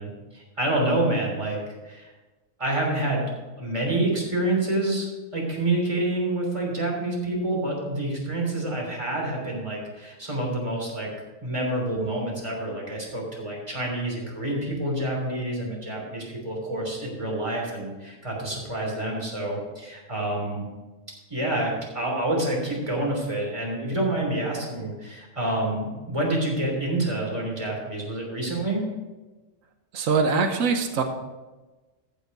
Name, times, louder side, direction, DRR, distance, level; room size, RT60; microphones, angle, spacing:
voice 1, 0.0-2.1 2.6-3.3 3.6-5.1 5.3-11.1 11.4-20.7 21.3-28.9, right 1 dB, 20° right, -2 dB, 3.3 m, -28 dB
voice 2, 29.9-31.0, right 5 dB, 80° right, 5 dB, 1.3 m, -22 dB
14.0 x 6.4 x 5.3 m, 1.2 s
omnidirectional pair, 1.4 m